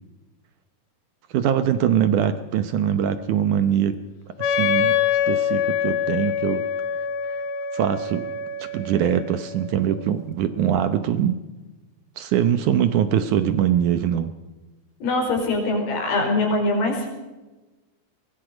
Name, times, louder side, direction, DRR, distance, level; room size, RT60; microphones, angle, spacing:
voice 1, 1.3-4.0 4.4-5.0 5.3-6.6 7.7-8.3 8.6-11.3 12.2-14.3, right 9 dB, 75° right, 11 dB, 1.8 m, -22 dB
Wind instrument woodwind instrument, 4.4-10.0, left 7 dB, 90° left, 3.7 m, -25 dB
voice 2, 15.0-17.1, left 2 dB, 70° left, 1 dB, 7.1 m, -23 dB
23.0 x 22.0 x 5.1 m, 1.1 s
omnidirectional pair, 4.8 m